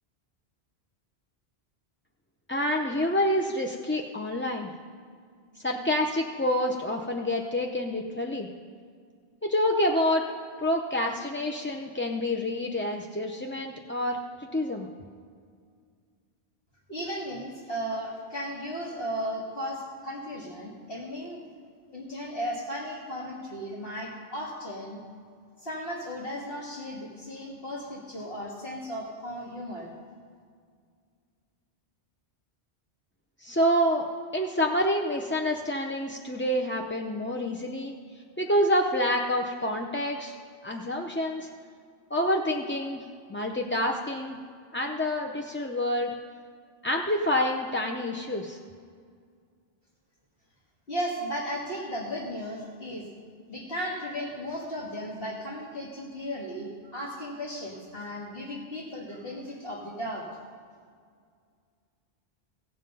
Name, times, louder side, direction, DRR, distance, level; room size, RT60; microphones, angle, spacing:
voice 1, 2.5-4.7 5.6-8.5 9.4-10.3 10.6-14.9 33.4-34.1 34.3-37.9 38.4-40.3 40.6-41.5 42.1-44.4 44.7-46.1 46.8-48.6, left 1 dB, 15° left, 0 dB, 0.4 m, -27 dB
voice 2, 16.9-21.4 21.9-25.0 25.6-29.9 50.9-53.1 53.5-60.2, equal, 65° left, -5 dB, 2.0 m, -35 dB
16.0 x 7.6 x 5.4 m, 2.1 s
omnidirectional pair, 1.1 m